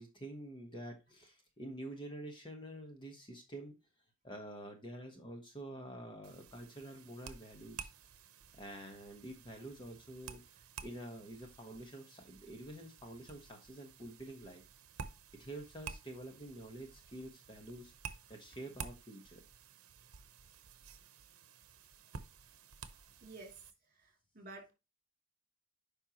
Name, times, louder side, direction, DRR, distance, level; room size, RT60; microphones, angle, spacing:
voice 1, 0.0-3.7 4.2-7.9 8.5-14.6 15.3-17.9 18.3-19.4, right 1 dB, 20° left, 4 dB, 1.2 m, -48 dB
sound 1, 6.2-23.7, right 6 dB, 75° right, 0.8 m, -52 dB
voice 2, 23.2-23.6 24.3-24.7, right 3 dB, 40° right, 1 dB, 3.0 m, -49 dB
9.0 x 5.5 x 3.0 m, 0.25 s
head